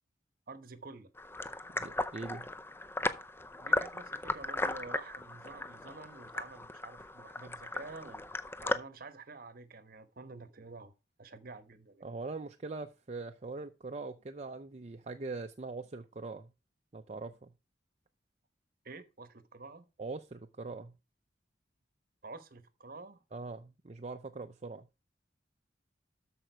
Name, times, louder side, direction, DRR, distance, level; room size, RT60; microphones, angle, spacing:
voice 1, 0.5-1.1 3.6-10.9 11.2-12.1 18.8-19.9 22.2-23.2, right 3 dB, 55° right, 1.1 m, -49 dB
sound 1, 1.2-8.8, left 2 dB, 15° left, 0.5 m, -36 dB
voice 2, 1.7-2.5 12.0-16.5 16.9-17.5 20.0-21.0 23.3-24.9, right 3 dB, 35° right, 0.6 m, -42 dB
13.0 x 5.1 x 4.4 m
head